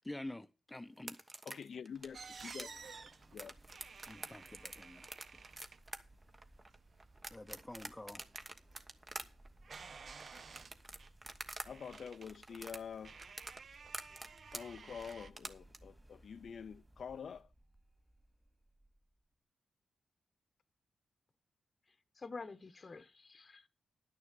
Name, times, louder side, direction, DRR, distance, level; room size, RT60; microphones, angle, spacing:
voice 1, 0.0-1.2 4.1-5.1 7.3-8.2, left 1 dB, 15° left, 0.7 m, -48 dB
sound 1, 1.0-11.7 11.9-15.8, right 2 dB, 30° right, 1.2 m, -47 dB
voice 2, 1.4-2.7 3.3-3.5 11.6-13.2 14.5-17.5, left 7 dB, 70° left, 0.4 m, -47 dB
sound 2, 1.9-19.3, right 1 dB, 15° right, 2.9 m, -63 dB
sound 3, 2.1-15.3, right 5 dB, 60° right, 0.6 m, -54 dB
voice 3, 21.9-23.7, left 4 dB, 40° left, 0.9 m, -49 dB
11.0 x 6.5 x 6.6 m
cardioid pair, 60°, 0 cm